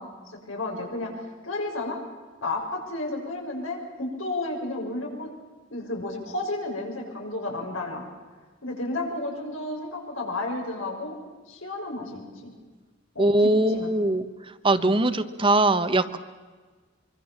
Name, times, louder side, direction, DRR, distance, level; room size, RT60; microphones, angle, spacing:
voice 1, 0.0-2.0 2.4-5.3 5.7-8.1 8.6-11.2 11.5-12.5 13.1-13.9 14.8-15.0, left 2 dB, 90° left, 1 dB, 6.7 m, -32 dB
voice 2, 13.2-14.3 14.6-16.2, right 2 dB, 25° right, 11 dB, 1.1 m, -21 dB
25.0 x 24.5 x 7.3 m, 1.4 s
head